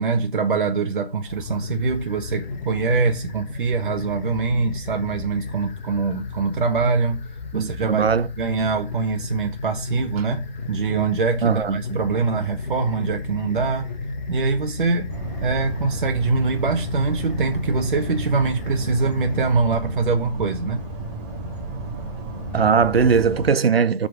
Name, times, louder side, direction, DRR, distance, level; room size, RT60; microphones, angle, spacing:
voice 1, 0.0-7.2 7.5-8.1 8.4-13.9 14.3-15.1 15.4-20.8, right 4 dB, 55° right, 1.0 m, -23 dB
sound 1, 1.2-19.6, left 3 dB, 45° left, 1.4 m, -33 dB
voice 2, 7.5-8.3 11.4-12.0 22.5-24.1, right 6 dB, 75° right, 0.7 m, -19 dB
sound 2, 15.1-23.5, right 1 dB, 15° right, 1.2 m, -32 dB
7.5 x 3.8 x 4.9 m
figure-of-eight pair, 150°, 30 cm